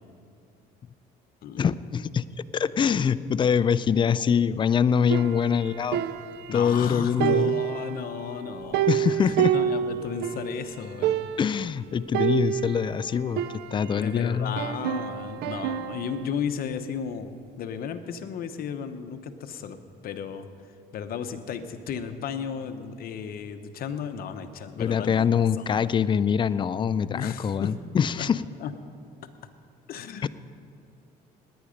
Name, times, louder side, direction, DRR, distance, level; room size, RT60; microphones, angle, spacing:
voice 1, 1.6-2.2 2.5-6.0 6.5-7.5 8.9-9.5 11.4-14.6 24.8-28.4 30.2-30.3, left 7 dB, 30° left, 15 dB, 0.4 m, -24 dB
sound 1, 5.1-6.9 7.2-10.5 10.8-10.9 11.0-11.6 12.1-14.1 14.6-16.2, right 10 dB, 80° right, 0.5 m, -28 dB
voice 2, 6.5-11.3 14.0-19.8 20.0-20.5 20.9-25.4 25.8-25.9 27.1-27.8 28.2-28.3 28.6-28.7 29.9-30.3, left 7 dB, 60° left, 8 dB, 1.0 m, -34 dB
19.0 x 9.7 x 5.1 m, 2.4 s
cardioid pair, 110°, 17 cm